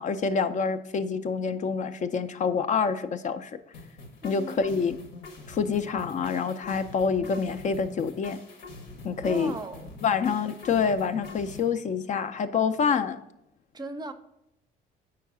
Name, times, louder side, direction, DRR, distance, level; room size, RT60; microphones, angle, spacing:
voice 1, 0.0-3.5 4.2-5.0 5.5-8.4 9.0-9.5 10.0-13.2, left 5 dB, 45° left, 0.4 m, -27 dB
sound 1, 3.7-11.7, left 3 dB, 85° left, 1.1 m, -45 dB
voice 2, 4.2-4.6 9.2-10.0 13.7-14.1, right 2 dB, 20° right, 0.5 m, -37 dB
4.7 x 4.5 x 6.0 m
cardioid pair, 105°, 18 cm